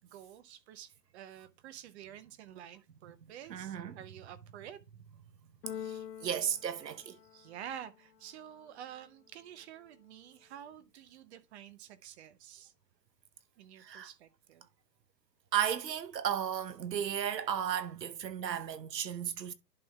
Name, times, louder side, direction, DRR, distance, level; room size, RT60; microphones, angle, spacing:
voice 1, 0.1-4.8 7.3-12.7 13.6-14.7, right 10 dB, 45° right, 0.7 m, -49 dB
voice 2, 3.5-4.0 5.8-7.2 13.8-14.1 15.5-19.5, right 9 dB, 85° right, 1.0 m, -34 dB
Keyboard (musical), 5.6-7.7, left 9 dB, 80° left, 0.8 m, -45 dB
11.0 x 5.4 x 2.3 m
hypercardioid pair, 125°, 49 cm